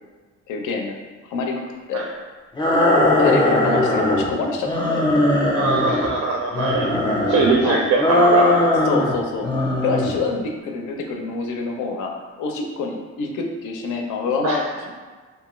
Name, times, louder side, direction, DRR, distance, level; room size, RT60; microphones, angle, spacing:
voice 1, 0.5-1.0 1.2-1.6 1.9-2.1 3.2-5.1 7.6-7.8 8.8-9.5 9.8-14.9, left 4 dB, 80° left, 2 dB, 0.5 m, -26 dB
sound 1, 2.6-4.3 4.6-6.1 6.5-7.6 8.0-9.2 9.4-10.2, left 1 dB, 15° left, 0.5 m, -19 dB
voice 2, 5.5-6.9 7.3-8.6 14.4-14.6, right 4 dB, 65° right, 0 dB, 0.4 m, -21 dB
2.7 x 2.2 x 3.0 m, 1.4 s
cardioid pair, 90°, 30 cm